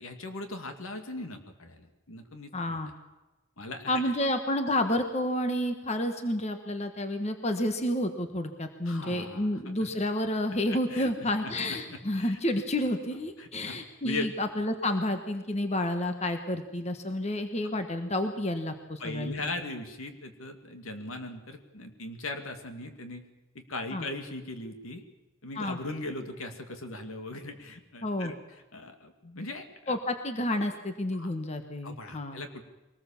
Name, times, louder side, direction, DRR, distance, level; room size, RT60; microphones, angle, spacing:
voice 1, 0.0-2.9 3.6-4.1 8.9-9.9 10.7-11.1 11.4-12.4 13.4-14.3 19.0-23.2 23.5-25.0 25.4-30.0 31.1-31.3 31.8-32.6, left 2 dB, 80° left, 6 dB, 2.4 m, -39 dB
voice 2, 2.5-2.9 3.9-19.4 23.9-24.0 25.6-25.8 28.0-28.3 29.9-32.4, left 1 dB, 30° left, 7 dB, 1.3 m, -30 dB
23.0 x 19.5 x 7.2 m, 1.0 s
head